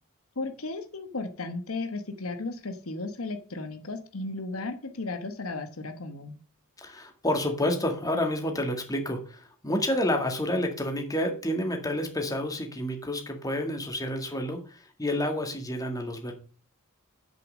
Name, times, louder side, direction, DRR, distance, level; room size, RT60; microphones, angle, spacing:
voice 1, 0.4-6.4, left 3 dB, 70° left, 7 dB, 1.2 m, -35 dB
voice 2, 6.8-16.3, left 1 dB, 15° left, 4 dB, 2.0 m, -29 dB
8.2 x 6.8 x 6.3 m, 0.37 s
head